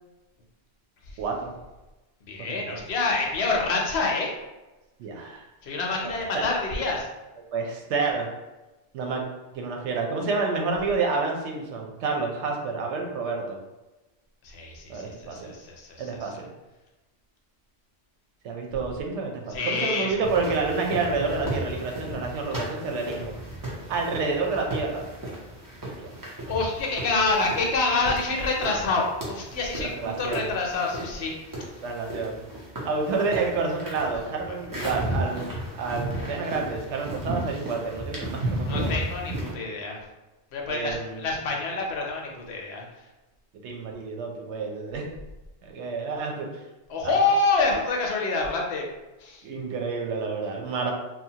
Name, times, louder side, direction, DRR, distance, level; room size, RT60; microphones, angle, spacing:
voice 1, 1.2-1.5 2.5-2.7 5.0-5.4 6.3-6.5 7.5-8.3 8.9-9.2 9.5-13.6 14.9-15.5 16.0-16.5 18.4-23.3 23.9-25.1 26.0-26.1 29.8-30.5 31.8-32.4 32.8-38.9 40.7-41.3 43.6-45.0 45.6-46.5 47.0-47.2 49.4-50.9, right 4 dB, 85° right, 1 dB, 0.9 m, -29 dB
voice 2, 2.3-4.3 5.6-7.1 14.4-16.3 19.5-20.1 26.3-31.3 38.6-40.0 40.5-42.8 46.9-48.9 49.2-49.4, left 3 dB, 70° left, 0 dB, 0.8 m, -27 dB
sound 1, 20.2-39.5, right 1 dB, 25° right, 0.5 m, -35 dB
2.8 x 2.1 x 2.7 m, 1.1 s
omnidirectional pair, 1.2 m